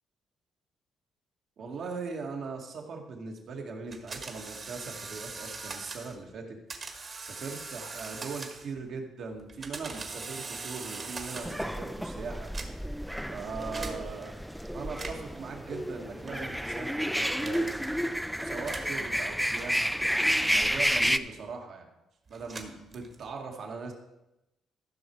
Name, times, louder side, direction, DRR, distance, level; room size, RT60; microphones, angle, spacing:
voice 1, 1.6-6.6 6.8-12.5 13.3-14.4 14.7-18.1 18.4-20.1 20.4-21.9 22.3-23.9, right 4 dB, 65° right, 2 dB, 1.9 m, -40 dB
sound 1, 3.9-6.2 6.7-8.8 9.4-11.7 12.4-13.0 13.7-14.0 14.8-15.4 16.3-16.6 17.4-17.8 18.6-19.0 19.8-21.5 22.3-23.3, right 4 dB, 40° right, 1.6 m, -41 dB
sound 2, 11.4-21.2, equal, ahead, 0.4 m, -30 dB
14.0 x 6.0 x 4.7 m, 0.93 s
cardioid pair, 90°, 0 cm